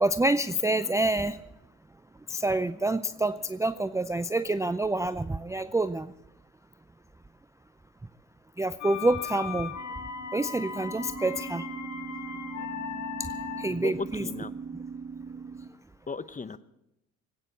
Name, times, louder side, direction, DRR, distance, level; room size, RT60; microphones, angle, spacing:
voice 1, 0.0-1.4 2.3-6.1 8.6-9.8 10.3-11.6 13.6-14.3, right 2 dB, 10° right, 11 dB, 0.5 m, -27 dB
sound 1, 3.1-3.5 9.6-15.7, right 5 dB, 55° right, 2.5 m, -41 dB
sound 2, 8.8-13.9, left 7 dB, 50° left, 1.7 m, -38 dB
voice 2, 13.7-14.5 16.1-16.6, left 4 dB, 20° left, 15 dB, 0.8 m, -36 dB
19.5 x 9.0 x 7.4 m, 0.86 s
hypercardioid pair, 55°, 38 cm